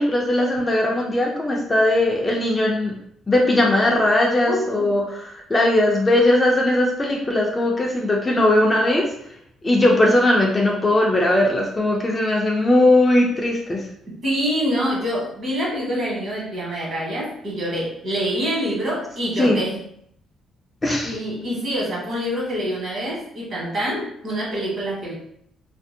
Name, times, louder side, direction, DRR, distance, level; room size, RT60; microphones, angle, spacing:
voice 1, 0.0-2.9 3.3-9.1 9.6-13.8 19.4-19.6 20.8-21.2, left 1 dB, 15° left, -1 dB, 0.4 m, -19 dB
voice 2, 4.5-4.9 14.2-19.8 21.0-25.1, equal, 45° right, -5 dB, 1.3 m, -26 dB
2.8 x 2.5 x 2.6 m, 0.69 s
cardioid pair, 155°, 0 cm